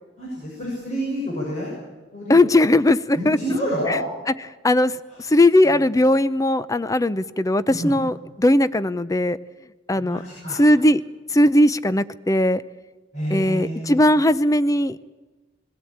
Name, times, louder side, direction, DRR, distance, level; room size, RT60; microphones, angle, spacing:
voice 1, 0.2-1.7 2.1-2.4 3.2-4.0 5.7-5.8 7.7-8.0 10.0-10.6 13.1-14.0, equal, 40° left, -6 dB, 7.1 m, -28 dB
voice 2, 2.3-3.4 3.9-4.0 4.6-4.9 5.3-9.4 9.9-10.2 10.6-11.0 11.3-12.6 13.3-15.0, left 1 dB, 20° left, 14 dB, 0.6 m, -18 dB
20.5 x 16.5 x 8.7 m, 1.2 s
head